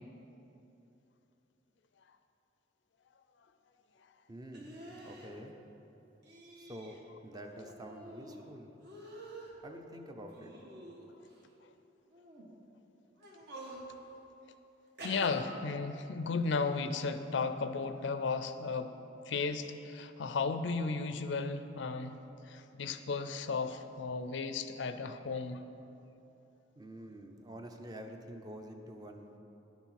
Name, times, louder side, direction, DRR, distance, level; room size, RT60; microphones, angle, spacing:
voice 1, 4.3-5.5 6.6-8.7 9.6-10.5 26.8-29.4, equal, 20° right, 4 dB, 0.7 m, -47 dB
sound 1, 4.5-5.3 6.2-7.0 7.3-8.4 8.8-9.5 10.3-11.3 12.1-12.4 13.2-13.8 15.0-15.3, right 1 dB, 55° right, 1.5 m, -48 dB
voice 2, 15.0-18.9 19.3-22.2 22.5-25.6, left 4 dB, 65° left, 10 dB, 0.5 m, -34 dB
10.5 x 7.2 x 5.8 m, 2.9 s
head